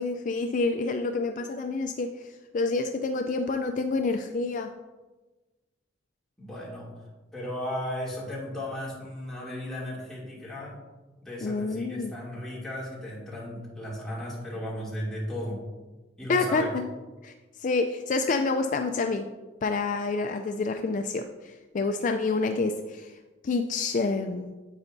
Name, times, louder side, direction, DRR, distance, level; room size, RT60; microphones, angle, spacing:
voice 1, 0.0-4.7 11.4-12.1 16.3-16.8 17.2-19.3 19.6-23.2 23.4-24.5, left 3 dB, 40° left, 6 dB, 0.4 m, -28 dB
voice 2, 6.4-6.9 7.3-10.7 11.2-15.6 16.2-16.7, left 1 dB, ahead, -7 dB, 2.4 m, -35 dB
9.7 x 8.0 x 2.6 m, 1.2 s
head